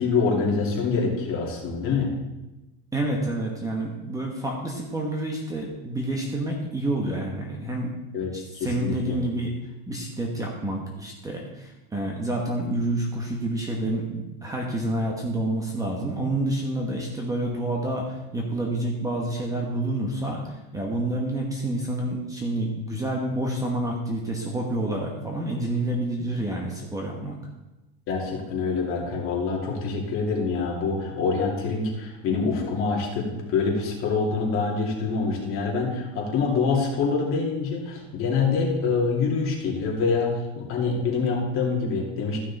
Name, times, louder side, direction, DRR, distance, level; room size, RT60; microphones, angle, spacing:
voice 1, 0.0-2.1 8.1-9.2 28.1-42.4, left 4 dB, 40° left, -2 dB, 2.8 m, -25 dB
voice 2, 2.9-8.0 8.3-9.5 9.9-20.4 20.7-27.4, right 1 dB, 10° right, 0 dB, 1.2 m, -28 dB
14.0 x 6.2 x 4.2 m, 1.0 s
supercardioid pair, 150°, 32 cm